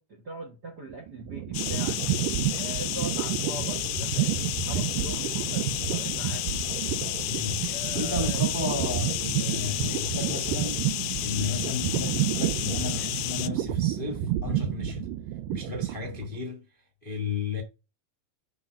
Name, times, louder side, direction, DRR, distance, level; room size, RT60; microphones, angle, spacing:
voice 1, 0.0-2.0 2.6-6.5 7.7-8.4, right 1 dB, 45° right, 1.4 m, -41 dB
sound 1, 0.9-16.4, right 12 dB, 80° right, 2.3 m, -30 dB
sound 2, 1.5-13.5, left 17 dB, 80° left, 1.9 m, -32 dB
voice 2, 7.3-15.1 15.5-16.6 17.0-17.6, left 5 dB, 25° left, 1.1 m, -34 dB
7.4 x 4.0 x 5.2 m
omnidirectional pair, 4.0 m